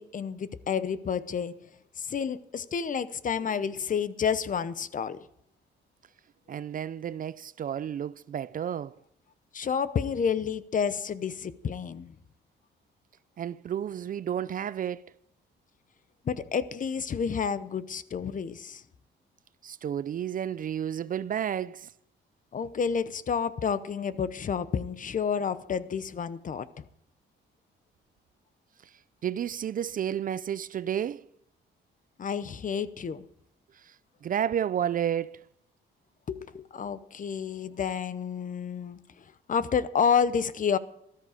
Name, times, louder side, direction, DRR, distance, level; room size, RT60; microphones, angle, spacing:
voice 1, 0.0-1.6 2.0-5.3 9.5-12.2 16.3-18.8 22.5-26.8 32.2-33.3 36.3-40.8, left 6 dB, 40° left, 0.8 m, -30 dB
voice 2, 6.5-8.9 13.4-15.0 19.6-21.9 29.2-31.2 34.2-35.4, right 9 dB, 45° right, 0.4 m, -31 dB
13.5 x 13.5 x 5.0 m
cardioid pair, 90°, 20 cm